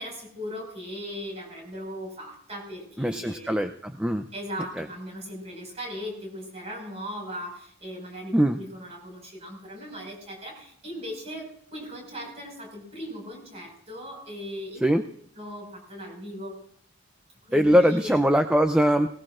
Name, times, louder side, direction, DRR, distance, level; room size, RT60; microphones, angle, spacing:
voice 1, 0.0-3.7 4.3-14.9 15.4-16.6 17.5-18.2, equal, 30° right, 0 dB, 5.5 m, -38 dB
voice 2, 3.0-4.2 8.3-8.6 14.8-15.0 17.5-19.1, equal, 5° right, 6 dB, 0.5 m, -21 dB
20.0 x 19.0 x 2.5 m, 0.64 s
head